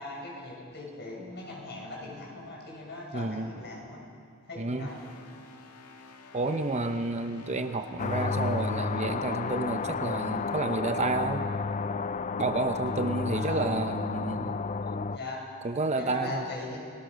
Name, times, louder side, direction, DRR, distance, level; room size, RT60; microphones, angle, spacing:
voice 1, 0.0-4.0 4.5-5.1 13.3-13.7 15.1-15.4 16.0-16.8, left 2 dB, 50° left, -2 dB, 7.0 m, -39 dB
voice 2, 3.1-3.5 4.6-4.9 6.3-11.4 12.4-14.6 15.6-16.5, right 2 dB, 30° right, 8 dB, 0.8 m, -30 dB
sound 1, 4.9-15.4, left 1 dB, 75° left, 2.3 m, -50 dB
sound 2, 8.0-15.2, left 4 dB, 35° left, 0.5 m, -31 dB
29.5 x 19.0 x 6.4 m, 2.2 s
head